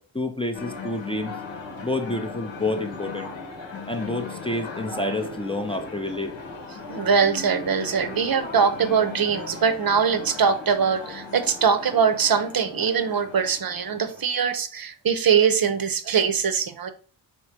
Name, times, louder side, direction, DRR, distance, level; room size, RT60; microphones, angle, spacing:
voice 1, 0.0-1.4 1.8-3.3 3.9-6.4, left 2 dB, 10° left, 0.5 m, -29 dB
sound 1, 0.5-14.4, left 3 dB, 80° left, 1.1 m, -37 dB
voice 2, 6.9-16.9, right 6 dB, 50° right, 0.7 m, -22 dB
3.2 x 2.9 x 4.5 m
cardioid pair, 50°, 45 cm